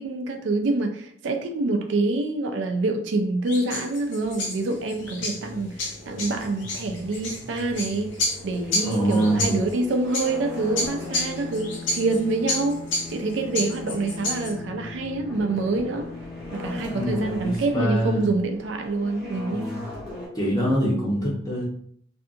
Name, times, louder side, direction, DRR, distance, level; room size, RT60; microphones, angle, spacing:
voice 1, 0.0-8.1 8.4-12.8 13.1-16.1 16.5-19.6, right 2 dB, 80° right, 6 dB, 0.4 m, -26 dB
sound 1, 3.5-14.5, left 2 dB, 85° left, 0.8 m, -31 dB
sound 2, 4.2-20.3, left 2 dB, ahead, 1.0 m, -40 dB
voice 2, 8.8-9.5 16.7-18.2 19.5-19.8 20.3-21.7, right 1 dB, 20° left, -5 dB, 0.9 m, -24 dB
Bowed string instrument, 10.2-18.1, left 4 dB, 65° left, 0.4 m, -40 dB
2.6 x 2.5 x 2.4 m, 0.63 s
head